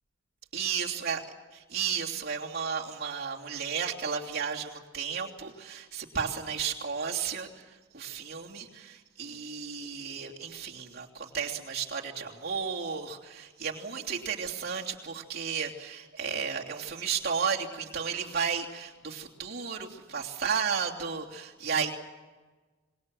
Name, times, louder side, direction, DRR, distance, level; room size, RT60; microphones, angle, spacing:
voice 1, 0.5-1.2 1.7-21.9, right 6 dB, 45° right, -2 dB, 3.0 m, -33 dB
26.5 x 21.5 x 7.8 m, 1.3 s
head